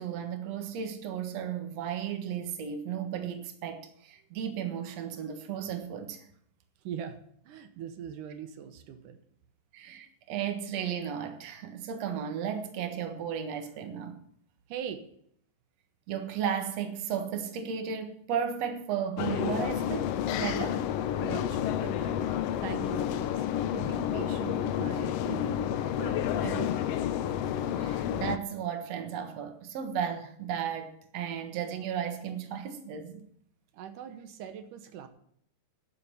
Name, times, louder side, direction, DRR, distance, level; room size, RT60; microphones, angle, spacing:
voice 1, 0.0-6.2 9.7-14.2 16.1-20.8 27.8-33.2, right 8 dB, 60° right, 2.4 m, -34 dB
voice 2, 6.8-7.2 7.5-9.2 14.7-15.1 21.2-23.5 23.7-26.9 33.7-35.1, right 8 dB, 85° right, 2.6 m, -41 dB
sound 1, 19.2-28.4, left 10 dB, 80° left, 1.4 m, -30 dB
11.0 x 7.2 x 9.7 m
omnidirectional pair, 3.6 m